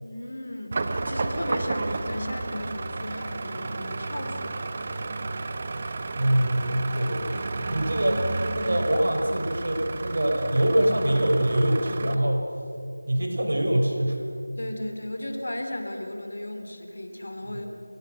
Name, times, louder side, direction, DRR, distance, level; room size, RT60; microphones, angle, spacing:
voice 1, 0.0-4.6 14.6-17.7, left 1 dB, 50° left, 5 dB, 3.8 m, -35 dB
sound 1, 0.7-12.1, right 3 dB, 25° right, 1.1 m, -32 dB
voice 2, 6.2-12.5 13.1-14.2 17.5-17.7, right 1 dB, 50° right, 2 dB, 5.2 m, -24 dB
28.5 x 24.0 x 6.5 m, 2.7 s
figure-of-eight pair, 170°, 0 cm